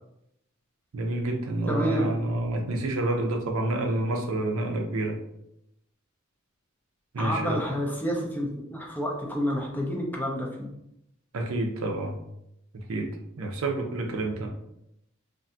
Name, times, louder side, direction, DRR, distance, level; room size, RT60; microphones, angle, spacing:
voice 1, 0.9-5.2 7.1-7.6 11.3-12.2 12.9-13.1 13.4-14.5, right 2 dB, 75° right, 2 dB, 0.5 m, -28 dB
voice 2, 1.7-2.1 7.2-10.7, equal, 10° left, -1 dB, 0.4 m, -29 dB
2.6 x 2.6 x 2.3 m, 0.80 s
head